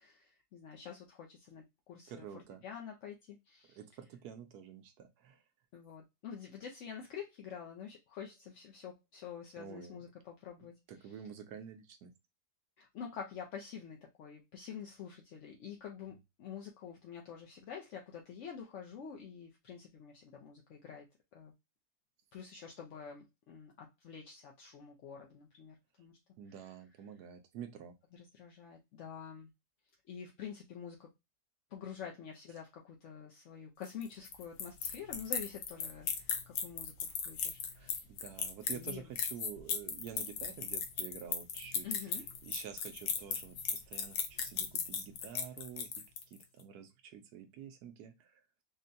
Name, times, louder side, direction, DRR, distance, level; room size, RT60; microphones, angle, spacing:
voice 1, 0.0-1.6 1.9-3.8 5.7-10.7 11.0-11.2 12.8-21.1 21.3-21.5 22.3-26.2 26.5-26.7 28.1-29.5 30.1-31.1 31.7-38.0 38.7-39.1 41.8-42.2, left 7 dB, 65° left, 0.8 m, -47 dB
voice 2, 2.1-2.6 3.7-5.4 9.6-10.0 10.9-12.1 26.4-28.0 37.8-42.1 42.4-45.9 46.3-48.4, right 8 dB, 80° right, 1.1 m, -49 dB
sound 1, 33.8-46.4, left 7 dB, 90° left, 1.2 m, -36 dB
3.7 x 2.1 x 2.6 m
omnidirectional pair, 1.7 m